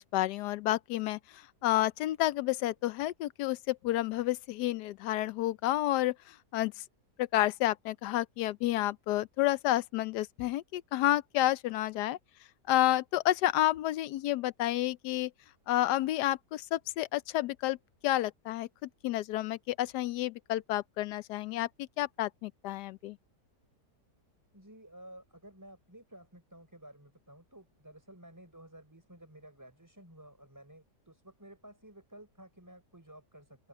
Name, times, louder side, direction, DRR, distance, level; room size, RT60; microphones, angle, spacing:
voice 1, 0.0-6.8 7.2-12.2 12.7-15.3 15.7-17.8 18.0-23.2, left 15 dB, 80° left, 1.1 m, -30 dB
voice 2, 24.5-33.7, right 1 dB, 10° right, 5.6 m, -53 dB
open air
omnidirectional pair, 1.8 m